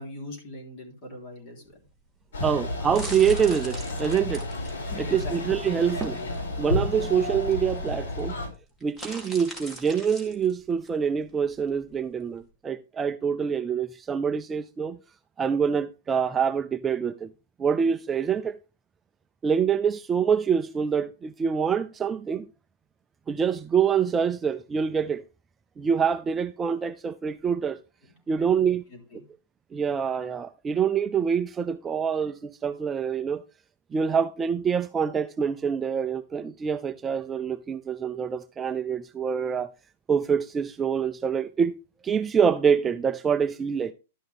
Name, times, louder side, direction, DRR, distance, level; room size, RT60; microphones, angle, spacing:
voice 1, 0.0-1.8 2.4-2.6 4.9-5.4 28.3-28.5 28.9-29.2, left 1 dB, 35° left, 3.6 m, -39 dB
sound 1, 1.7-12.5, right 1 dB, 10° left, 2.2 m, -44 dB
sound 2, 2.3-8.5, left 2 dB, 85° left, 5.1 m, -31 dB
voice 2, 2.4-4.5 5.0-6.2 6.6-8.4 8.8-15.0 15.4-17.3 17.6-18.5 19.4-22.5 23.3-25.2 25.8-27.8 28.3-28.8 29.7-33.4 33.9-39.7 40.1-41.8 42.0-43.9, right 7 dB, 15° right, 0.3 m, -25 dB
11.5 x 6.1 x 3.4 m
hypercardioid pair, 160°, 0 cm